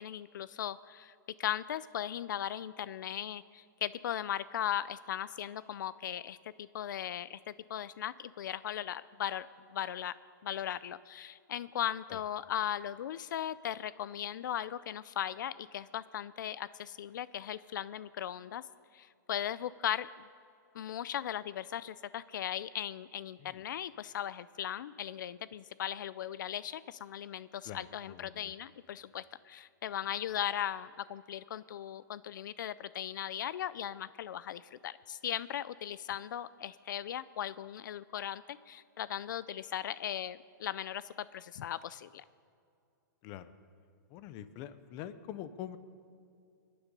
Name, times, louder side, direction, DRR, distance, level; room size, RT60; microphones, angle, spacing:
voice 1, 0.0-9.5 9.7-10.1 10.4-18.6 18.9-20.1 20.7-42.2, left 10 dB, 70° left, 18 dB, 0.4 m, -38 dB
voice 2, 27.7-28.5 43.2-43.5 44.1-45.8, left 11 dB, 30° left, 14 dB, 0.6 m, -45 dB
22.5 x 10.0 x 5.3 m, 2.5 s
hypercardioid pair, 165°, 11 cm